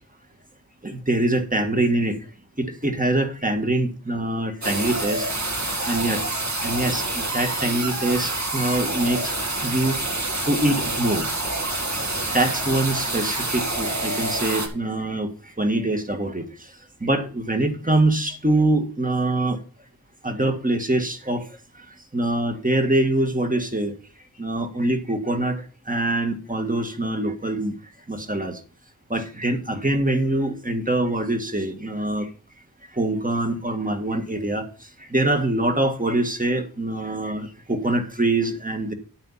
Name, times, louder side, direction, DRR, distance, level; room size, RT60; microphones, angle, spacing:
voice 1, 0.8-2.2 2.6-5.3 5.9-6.3 6.6-9.4 9.6-10.0 10.5-11.7 12.3-19.6 20.2-24.0 24.4-27.8 28.1-28.6 29.1-32.3 32.9-38.9, right 1 dB, 20° right, 5 dB, 1.8 m, -24 dB
sound 1, 4.6-14.7, right 2 dB, 50° right, 2.6 m, -27 dB
9.7 x 9.0 x 4.2 m, 0.36 s
wide cardioid pair, 65°, 37 cm